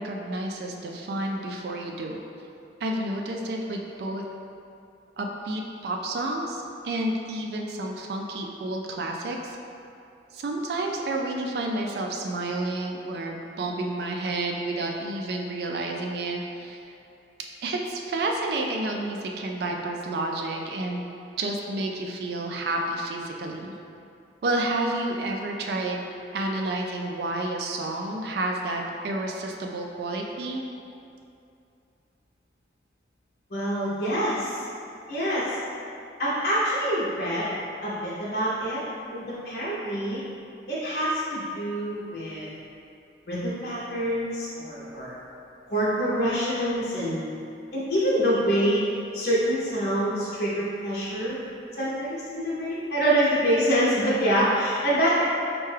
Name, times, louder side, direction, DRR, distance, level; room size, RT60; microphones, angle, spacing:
voice 1, 0.0-2.2 2.8-4.2 5.2-9.6 10.3-16.8 17.6-21.0 21.4-23.7 24.4-26.0 26.3-30.6, right 2 dB, 60° right, 1 dB, 0.3 m, -30 dB
voice 2, 33.5-34.6 35.1-35.6 36.2-37.6 37.8-38.8 39.1-40.2 40.7-42.5 43.3-45.1 45.7-47.2 47.7-48.9 49.1-51.4 51.8-55.2, equal, 55° left, -8 dB, 0.6 m, -26 dB
4.5 x 2.2 x 3.2 m, 2.6 s
head